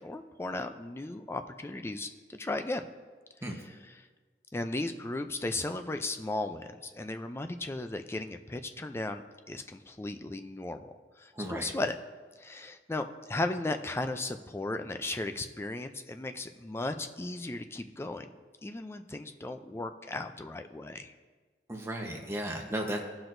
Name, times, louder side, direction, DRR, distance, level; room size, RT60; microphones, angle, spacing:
voice 1, 0.0-2.9 4.5-12.0 12.4-18.3 18.6-21.1, left 2 dB, 15° left, 7 dB, 0.4 m, -36 dB
voice 2, 11.3-11.7 21.7-23.0, right 1 dB, 15° right, 1 dB, 0.9 m, -35 dB
16.5 x 6.0 x 2.6 m, 1.4 s
head